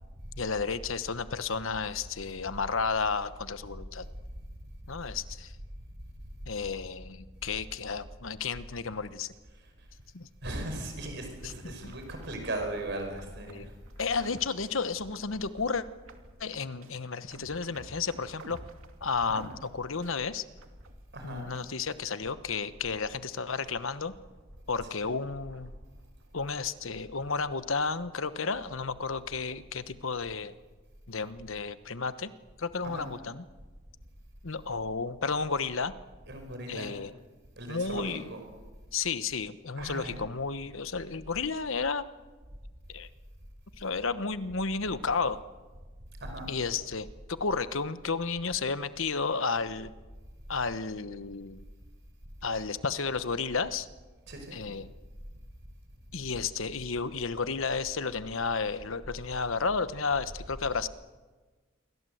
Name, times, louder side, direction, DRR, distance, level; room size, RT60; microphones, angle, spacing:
voice 1, 0.4-4.1 4.9-5.6 6.5-9.3 10.1-10.3 11.4-11.9 13.5-13.7 14.0-15.8 16.4-18.6 19.0-20.4 21.2-24.1 24.7-25.7 26.3-30.6 31.1-32.3 32.6-33.4 34.4-35.9 36.7-37.1 37.7-38.2 38.9-42.1 42.9-43.1 43.8-45.4 46.5-49.9 50.5-51.6 52.4-53.9 54.5-54.9 56.1-60.9, left 4 dB, 70° left, 13 dB, 1.1 m, -32 dB
voice 2, 9.5-9.9 10.4-13.7 19.3-19.5 21.1-21.5 25.0-25.1 32.8-33.1 36.3-36.9 37.6-38.4 39.8-40.2 46.2-46.5 54.3-54.6, right 1 dB, 55° right, 4 dB, 5.2 m, -38 dB
sound 1, 11.3-21.2 21.5-27.2, right 2 dB, 80° right, 2.4 m, -54 dB
28.0 x 23.5 x 7.9 m, 1.3 s
head